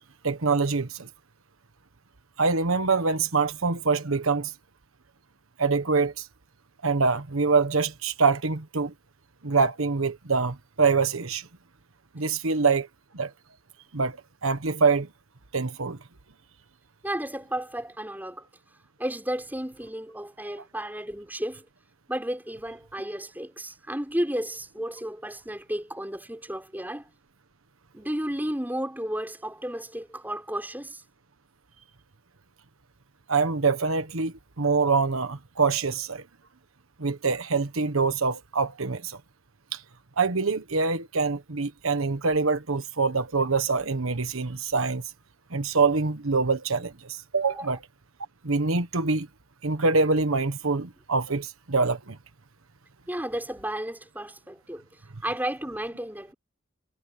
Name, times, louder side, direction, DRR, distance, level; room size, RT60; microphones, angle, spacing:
voice 1, 0.2-1.1 2.4-4.5 5.6-6.3 6.8-8.9 9.4-11.5 12.1-12.9 13.1-13.3 13.9-15.1 15.5-16.0 33.3-36.2 37.0-39.2 39.7-39.8 40.2-45.0 45.5-47.8 48.4-49.3 49.6-52.2, right 4 dB, 85° right, 1.3 m, -25 dB
voice 2, 17.0-18.5 19.0-21.6 22.1-27.0 27.9-31.0 47.5-47.7 53.1-54.8 55.2-56.3, right 1 dB, 10° right, 5.6 m, -33 dB
head